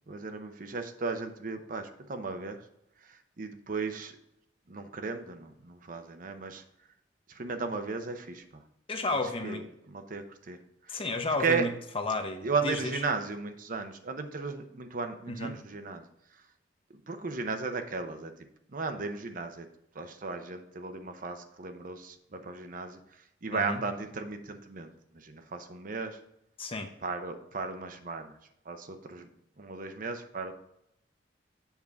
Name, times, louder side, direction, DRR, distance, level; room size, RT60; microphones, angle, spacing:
voice 1, 0.1-2.6 3.0-4.1 4.7-6.6 7.3-8.6 9.1-10.6 10.8-11.0 11.4-11.7 12.4-16.1 17.1-18.3 18.7-19.7 19.9-26.2 27.0-28.4 28.7-29.3 29.6-30.5, right 4 dB, 50° right, 7 dB, 0.7 m, -35 dB
voice 2, 8.9-9.6 10.9-11.7 11.9-12.8 15.3-15.6 23.5-23.8 26.6-26.9, left 2 dB, 30° left, 5 dB, 0.8 m, -32 dB
7.2 x 5.4 x 3.6 m, 0.79 s
head